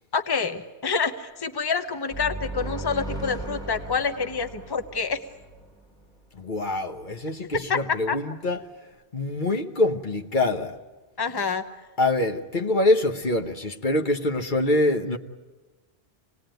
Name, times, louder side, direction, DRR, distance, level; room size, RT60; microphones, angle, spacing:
voice 1, 0.1-5.2 7.7-7.8 8.1-8.2 11.2-11.6, left 5 dB, 25° left, 1.0 m, -27 dB
sound 1, 2.1-5.8, right 2 dB, 5° left, 1.9 m, -36 dB
voice 2, 6.3-8.6 9.1-10.8 12.0-15.2, left 2 dB, 55° left, 1.2 m, -25 dB
26.0 x 19.5 x 9.1 m
omnidirectional pair, 1.0 m